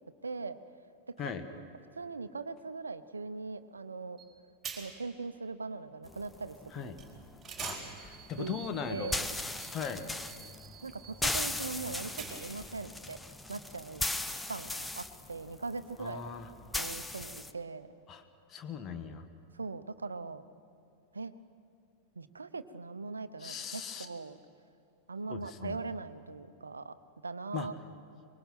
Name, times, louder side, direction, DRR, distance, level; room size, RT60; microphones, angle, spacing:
voice 1, 0.2-0.6 1.1-1.3 1.9-4.2 4.7-6.9 8.4-8.6 8.9-9.2 10.8-13.2 13.5-14.0 14.3-16.3 16.7-17.9 19.5-20.4 21.1-21.3 22.1-24.4 25.1-27.0 27.2-27.7, right 4 dB, 75° right, 13 dB, 0.8 m, -40 dB
sound 1, 4.2-4.3 4.6-5.2 7.0-7.1 7.4-12.7, right 7 dB, 20° right, 4.4 m, -46 dB
sound 2, 6.1-17.5, left 2 dB, 5° left, 0.8 m, -39 dB
voice 2, 7.6-9.1 9.4-10.1 16.0-16.5 18.1-18.2 18.5-19.3 23.4-24.1 25.3-25.8 27.5-27.7, left 7 dB, 30° left, 7 dB, 1.5 m, -39 dB
23.5 x 22.0 x 5.9 m, 2.7 s
figure-of-eight pair, 90°, 0 cm